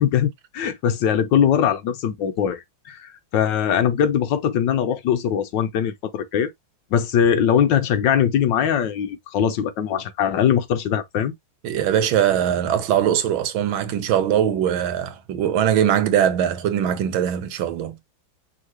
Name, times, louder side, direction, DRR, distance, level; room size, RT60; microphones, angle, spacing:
voice 1, 0.0-6.5 6.9-11.3, left 9 dB, 70° left, 1.3 m, -21 dB
voice 2, 11.6-18.0, right 10 dB, 80° right, 1.6 m, -21 dB
5.6 x 3.0 x 2.9 m
omnidirectional pair, 2.2 m